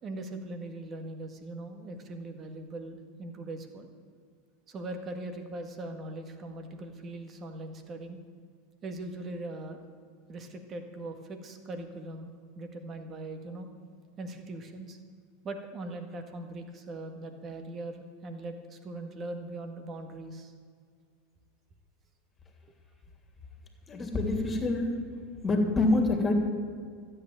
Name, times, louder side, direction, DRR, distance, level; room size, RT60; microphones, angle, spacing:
voice 1, 0.0-3.9 4.7-8.2 8.8-9.8 10.3-13.7 14.2-15.0 15.4-20.5, right 2 dB, 30° right, 6 dB, 1.8 m, -40 dB
voice 2, 23.9-24.9 25.4-26.3, left 2 dB, 20° left, 1 dB, 3.0 m, -26 dB
13.5 x 8.6 x 9.0 m, 2.1 s
hypercardioid pair, 90°, 0 cm